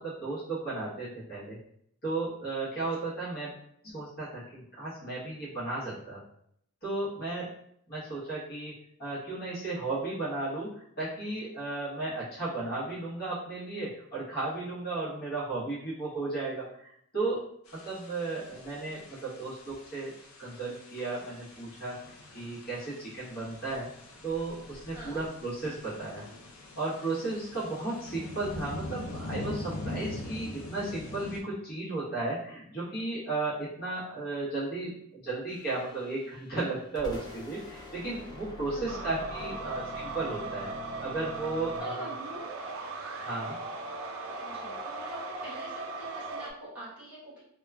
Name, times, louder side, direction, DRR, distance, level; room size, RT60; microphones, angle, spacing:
voice 1, 0.0-1.6 2.0-3.5 3.8-6.2 6.8-7.5 7.9-8.7 9.0-17.5 17.7-20.1 20.4-22.0 22.3-23.9 24.2-26.2 26.8-40.7 41.0-42.0 43.2-43.6, right 3 dB, 45° left, -9 dB, 1.1 m, -34 dB
voice 2, 2.7-3.1 24.9-25.3 38.6-39.8 41.7-42.5 44.4-47.4, right 1 dB, 5° right, -11 dB, 1.1 m, -46 dB
sound 1, 17.7-31.4, left 2 dB, 70° left, 0.5 m, -43 dB
sound 2, 35.5-36.7 36.9-41.8, equal, 20° left, 0.5 m, -45 dB
sound 3, 38.9-46.5, right 2 dB, 70° right, 0.4 m, -38 dB
2.9 x 2.3 x 2.3 m, 0.71 s
head